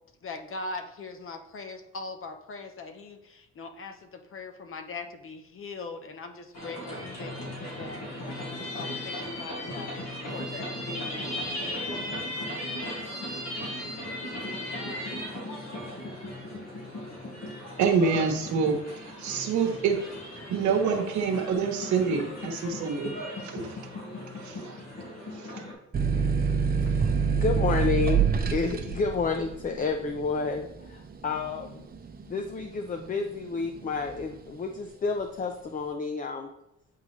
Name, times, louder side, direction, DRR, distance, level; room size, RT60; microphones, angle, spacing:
voice 1, 0.2-9.9 10.3-11.4 13.2-13.4 14.5-15.0, left 3 dB, 45° left, 6 dB, 0.9 m, -41 dB
sound 1, 6.5-25.7, left 1 dB, 60° left, 2.2 m, -37 dB
voice 2, 17.8-19.9 20.5-23.1 23.4-23.8 24.3-24.8 25.3-25.6, right 5 dB, 75° right, 4 dB, 1.0 m, -27 dB
sound 2, 25.9-33.2 33.6-34.4, right 6 dB, 30° right, 0.7 m, -27 dB
voice 3, 26.8-28.2 28.5-31.9 32.3-36.5, left 4 dB, 30° left, 5 dB, 0.5 m, -30 dB
8.4 x 3.8 x 3.2 m, 0.83 s
cardioid pair, 95°, 29 cm